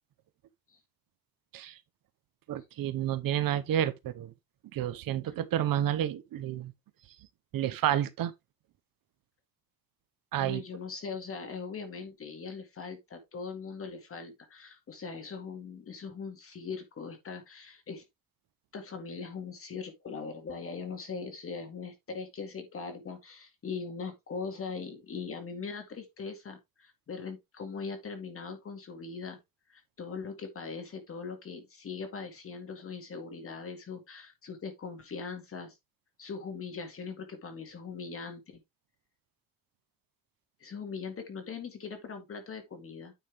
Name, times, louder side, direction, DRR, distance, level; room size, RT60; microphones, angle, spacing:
voice 1, 2.5-4.3 4.7-6.7 7.5-8.3 10.3-10.6, right 11 dB, 70° right, 0.9 m, -30 dB
voice 2, 10.4-18.1 18.7-29.4 29.7-35.7 36.2-38.6 40.6-43.1, left 5 dB, 40° left, 2.1 m, -40 dB
9.2 x 5.3 x 3.4 m
cardioid pair, 155°, 35 cm